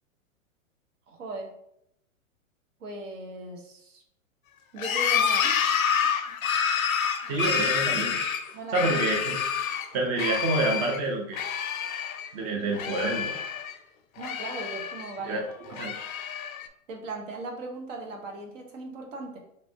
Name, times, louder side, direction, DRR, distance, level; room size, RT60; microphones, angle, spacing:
voice 1, 1.1-1.5 2.8-4.0 4.7-5.5 8.5-8.9 14.2-15.5 16.9-19.4, right 3 dB, 65° right, 2 dB, 1.0 m, -38 dB
sound 1, 4.8-9.9 10.2-11.0 11.3-12.3 12.6-13.8 14.2-15.2 15.7-16.7, left 7 dB, 90° left, 0.5 m, -28 dB
voice 2, 7.3-8.2 8.7-9.4 9.9-11.4 12.3-13.4 15.3-15.4 15.8-15.9, right 2 dB, 20° right, 0 dB, 0.3 m, -28 dB
3.1 x 2.6 x 2.8 m, 0.74 s
hypercardioid pair, 120°, 41 cm